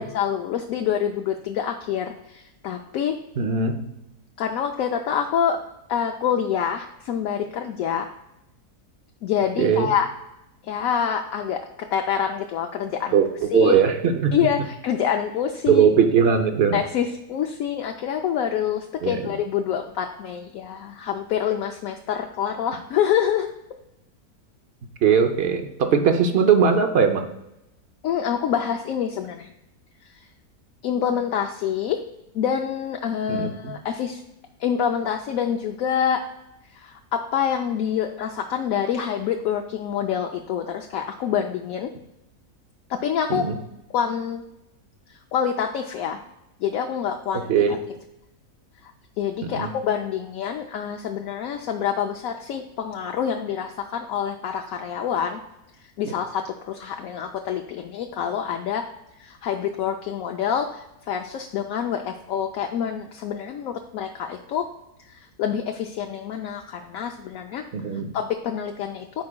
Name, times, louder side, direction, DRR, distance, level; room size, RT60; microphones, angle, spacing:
voice 1, 0.0-3.1 4.4-5.6 5.9-8.1 9.2-10.1 10.6-13.2 13.5-13.8 14.3-15.9 16.7-23.5 28.0-29.5 30.8-32.0 32.3-34.2 34.6-36.2 36.7-41.9 42.9-43.4 43.9-44.4 45.3-46.2 46.6-47.5 48.8-48.9 49.2-55.4 56.0-58.8 59.2-64.7 65.1-65.2 65.4-67.6 68.1-69.2, left 8 dB, 70° left, 3 dB, 0.9 m, -26 dB
voice 2, 3.4-3.9 9.6-9.9 13.1-14.4 15.7-16.8 19.0-19.2 25.0-27.3 33.3-33.7 43.3-43.6 47.5-47.8 49.4-49.7 67.7-68.1, right 6 dB, 55° right, 6 dB, 0.7 m, -20 dB
13.5 x 4.8 x 2.2 m, 0.90 s
omnidirectional pair, 1.7 m